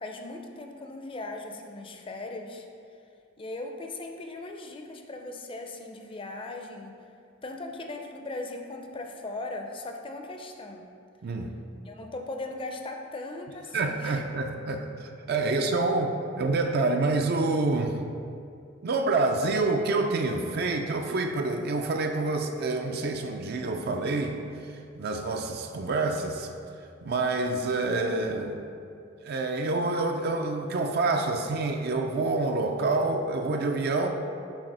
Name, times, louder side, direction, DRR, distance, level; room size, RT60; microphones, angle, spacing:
voice 1, 0.0-2.7 3.4-6.9 7.4-10.9 11.9-14.2 15.5-15.6, left 2 dB, 30° left, 4 dB, 0.5 m, -38 dB
voice 2, 13.7-18.0 18.8-24.4 24.9-26.5 27.0-28.6 29.2-34.1, right 3 dB, 55° right, 4 dB, 0.4 m, -27 dB
7.2 x 2.9 x 5.4 m, 2.5 s
head